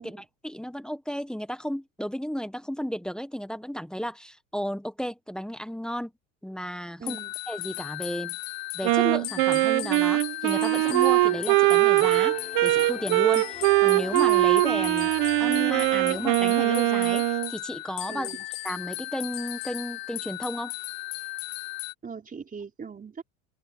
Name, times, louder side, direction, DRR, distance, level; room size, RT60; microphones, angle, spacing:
voice 1, 0.0-6.1 6.4-7.2 7.5-8.4 8.7-12.4 12.6-15.1 15.4-18.3 18.6-20.7, equal, ahead, 1.2 m, -33 dB
voice 2, 7.0-7.3 18.1-18.5 22.0-23.2, right 5 dB, 20° right, 3.8 m, -40 dB
sound 1, 7.1-21.9, left 21 dB, 60° left, 1.3 m, -36 dB
Wind instrument woodwind instrument, 8.8-17.5, right 21 dB, 60° right, 1.1 m, -22 dB
sound 2, 10.5-17.1, left 5 dB, 20° left, 3.4 m, -43 dB
open air
supercardioid pair, 120°, 39 cm